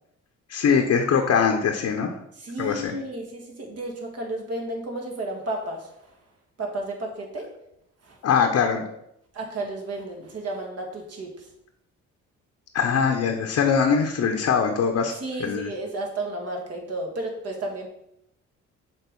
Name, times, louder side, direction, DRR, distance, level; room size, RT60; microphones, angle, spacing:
voice 1, 0.5-2.2 2.6-2.9 8.2-8.8 12.7-15.1 15.4-15.7, left 6 dB, 60° left, 3 dB, 0.9 m, -22 dB
voice 2, 2.4-6.1 6.6-7.5 8.0-8.2 9.3-11.5 15.1-17.9, right 2 dB, 55° right, 1 dB, 1.9 m, -32 dB
6.3 x 3.8 x 5.3 m, 0.78 s
cardioid pair, 90°, 30 cm